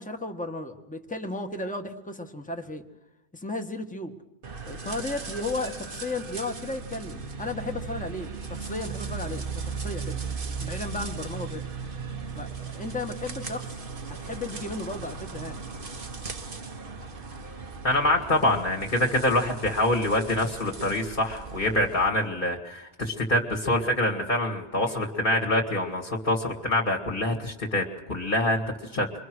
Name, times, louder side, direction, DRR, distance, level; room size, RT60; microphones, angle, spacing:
voice 1, 0.0-2.8 3.3-4.2 4.7-10.2 10.6-11.7 12.3-13.8 14.2-15.6, left 2 dB, 5° left, 4 dB, 1.7 m, -34 dB
sound 1, 4.4-22.1, right 5 dB, 45° right, 1.5 m, -37 dB
voice 2, 17.8-28.6 28.9-29.1, left 1 dB, 40° left, 2 dB, 2.4 m, -25 dB
27.5 x 23.5 x 6.3 m, 0.95 s
omnidirectional pair, 1.2 m